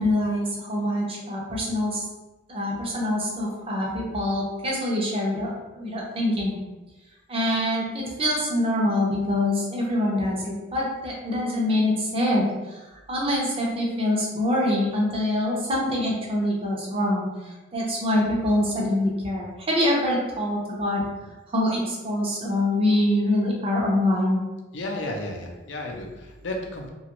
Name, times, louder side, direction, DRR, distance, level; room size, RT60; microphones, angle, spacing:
voice 1, 0.0-2.0 2.5-6.6 7.3-12.4 13.1-17.3 17.7-21.0 21.5-24.4, left 1 dB, 30° right, -3 dB, 0.6 m, -25 dB
voice 2, 24.7-26.9, left 1 dB, 70° left, 1 dB, 0.5 m, -33 dB
2.9 x 2.3 x 2.9 m, 1.1 s
head